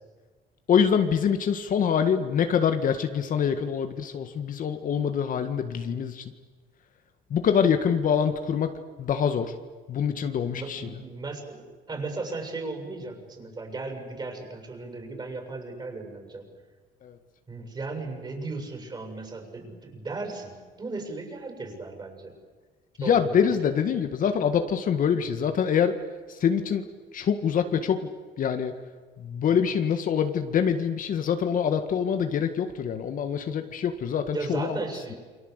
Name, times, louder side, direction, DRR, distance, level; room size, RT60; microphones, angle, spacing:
voice 1, 0.7-6.2 7.3-8.7 9.0-9.5 9.9-10.9 17.0-17.2 23.0-25.9 26.3-26.8 27.1-28.0 28.4-28.7 29.2-34.8, left 7 dB, 55° left, 8 dB, 1.8 m, -25 dB
voice 2, 10.5-16.5 17.5-22.4 23.0-23.5 34.3-35.2, right 3 dB, 25° right, 4 dB, 7.5 m, -36 dB
28.5 x 24.0 x 8.2 m, 1.4 s
cardioid pair, 110°, 17 cm